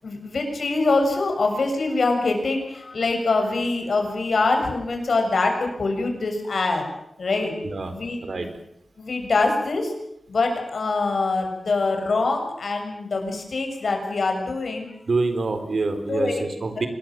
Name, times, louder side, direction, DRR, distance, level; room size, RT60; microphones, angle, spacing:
voice 1, 0.0-6.9 7.2-7.5 7.9-8.5 9.0-9.9 10.3-14.9 16.1-16.5, left 3 dB, 75° left, 4 dB, 6.8 m, -24 dB
voice 2, 15.1-16.9, right 3 dB, 65° right, 8 dB, 4.1 m, -26 dB
26.0 x 21.5 x 7.8 m, 0.78 s
wide cardioid pair, 105°, 0 cm